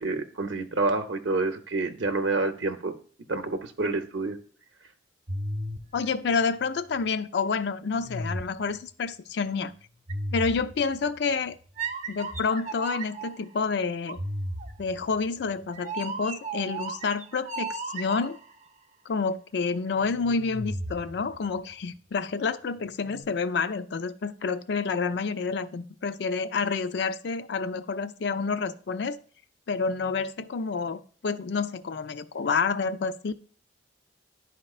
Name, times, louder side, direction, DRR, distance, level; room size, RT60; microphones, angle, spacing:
voice 1, 0.0-2.9 3.3-4.4, right 3 dB, 75° right, 6 dB, 0.7 m, -28 dB
sound 1, 5.3-7.1 7.9-8.8 10.1-11.1 11.8-13.4 14.1-18.6 19.9-21.7 22.9-23.2, right 2 dB, 40° right, 0.6 m, -35 dB
voice 2, 5.9-9.7 10.3-11.6 12.1-14.2 14.8-18.4 19.1-29.2 29.7-33.3, left 5 dB, 60° left, 12 dB, 0.4 m, -29 dB
11.5 x 4.3 x 2.4 m, 0.43 s
head